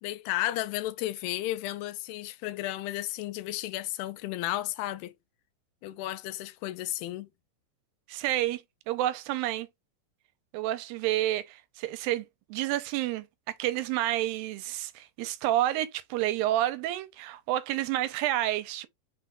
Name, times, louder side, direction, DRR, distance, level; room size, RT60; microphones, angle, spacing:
voice 1, 0.0-5.1 5.8-7.3, left 15 dB, 85° left, 2.3 m, -33 dB
voice 2, 8.1-9.7 10.5-18.9, right 14 dB, 85° right, 2.3 m, -29 dB
6.0 x 2.2 x 3.6 m
omnidirectional pair, 4.1 m